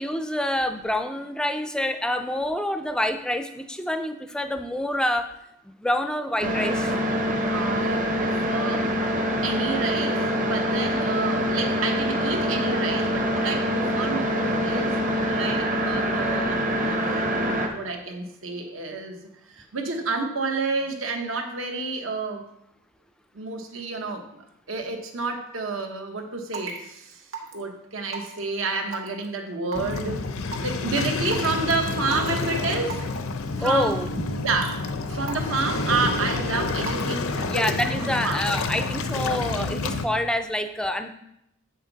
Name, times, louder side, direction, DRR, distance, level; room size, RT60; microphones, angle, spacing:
voice 1, 0.0-5.3 5.6-7.0 33.6-34.1 37.5-41.1, left 1 dB, 5° left, 8 dB, 0.4 m, -27 dB
sound 1, 6.4-17.7, equal, 40° right, 1.0 m, -25 dB
voice 2, 7.5-8.9 9.4-19.2 19.5-22.5 23.3-27.2 27.5-30.2 30.6-33.0 33.6-34.0 34.4-38.5, right 3 dB, 70° right, 4 dB, 1.1 m, -30 dB
Raindrop / Water tap faucet / Drip, 26.5-26.8 27.3-27.6 28.1-28.4 28.9-29.2 29.7-29.9 30.5-30.7 31.3-31.5 32.0-32.3 32.9-33.1 33.7-33.9 34.5-34.7 35.3-35.6 36.1-36.4 36.9-37.1, right 5 dB, 85° right, 1.5 m, -34 dB
Waves surf, 29.7-40.0, left 3 dB, 80° left, 0.6 m, -29 dB
7.8 x 6.5 x 4.0 m, 0.81 s
head